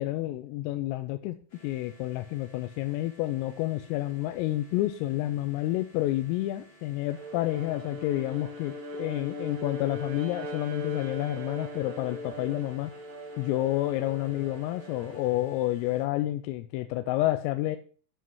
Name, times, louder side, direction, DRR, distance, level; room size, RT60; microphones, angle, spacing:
voice 1, 0.0-12.9 13.4-17.8, left 15 dB, 85° left, 8 dB, 3.2 m, -29 dB
sound 1, 1.5-16.0, equal, 30° left, 3.3 m, -57 dB
Bowed string instrument, 7.1-15.5, left 1 dB, 75° right, 2.0 m, -40 dB
10.5 x 5.7 x 4.7 m, 0.42 s
omnidirectional pair, 5.9 m